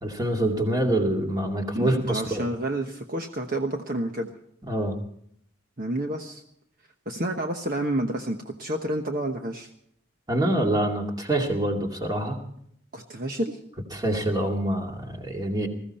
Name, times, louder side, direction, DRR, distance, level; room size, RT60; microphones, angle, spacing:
voice 1, 0.0-2.4 4.7-5.0 10.3-12.4 13.9-15.7, right 1 dB, 20° right, 2 dB, 2.4 m, -25 dB
voice 2, 1.7-4.3 5.8-6.4 7.1-9.7 12.9-13.6, right 1 dB, 45° right, 4 dB, 1.1 m, -29 dB
21.0 x 15.0 x 4.3 m, 0.69 s
head